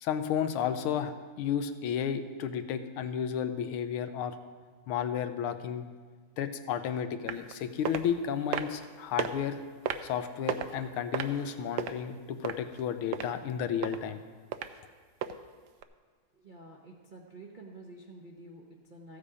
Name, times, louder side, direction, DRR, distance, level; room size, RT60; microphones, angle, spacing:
voice 1, 0.0-4.4 4.9-5.8 6.4-9.6 10.0-14.2, left 8 dB, 85° left, 9 dB, 1.6 m, -32 dB
sound 1, 7.3-7.5 7.8-8.0 8.5-8.8 9.2-9.3 9.9-10.1 10.5-10.8 11.1-11.9 12.4-12.8 13.1-13.3 13.8-14.0 14.5-14.7 15.2-15.3 15.8-15.9, right 10 dB, 75° right, 1.0 m, -32 dB
voice 2, 16.3-19.2, right 2 dB, 50° right, -2 dB, 0.5 m, -49 dB
14.0 x 8.4 x 4.9 m, 1.5 s
omnidirectional pair, 2.3 m